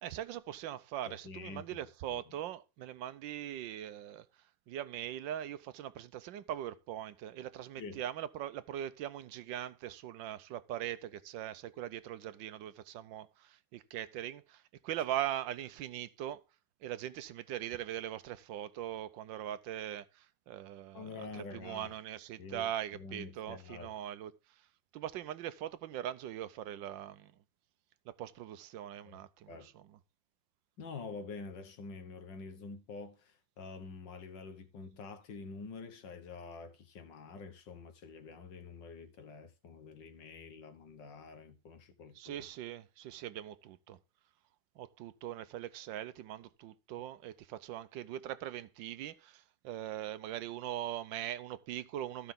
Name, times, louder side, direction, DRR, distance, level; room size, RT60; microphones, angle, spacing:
voice 1, 0.0-4.2 4.7-16.4 16.8-24.3 24.9-27.3 28.1-29.8 42.1-44.0 44.8-52.3, right 12 dB, 80° right, 1.4 m, -41 dB
voice 2, 1.1-2.2 7.8-8.1 20.9-21.9 22.4-23.9 29.1-29.2 29.5-29.7 30.8-42.5, left 4 dB, 70° left, 2.0 m, -47 dB
14.5 x 5.7 x 3.8 m
omnidirectional pair, 2.1 m